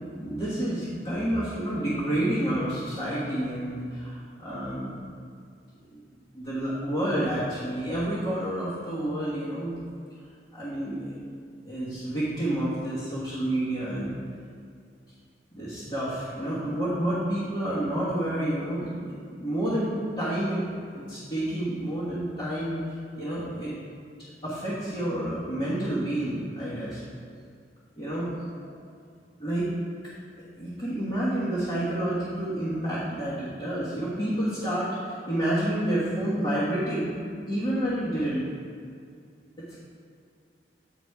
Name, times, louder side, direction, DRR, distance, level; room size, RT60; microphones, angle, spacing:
voice 1, 0.0-5.0 5.9-6.0 6.3-9.7 10.5-11.2 11.6-14.2 15.5-20.6 20.9-22.8 23.2-23.7 24.4-27.0 28.0-28.3 29.4-29.7 30.4-37.1 37.5-38.5 39.7-39.8, right 1 dB, 25° left, -12 dB, 1.5 m, -29 dB
9.2 x 4.0 x 4.8 m, 2.3 s
head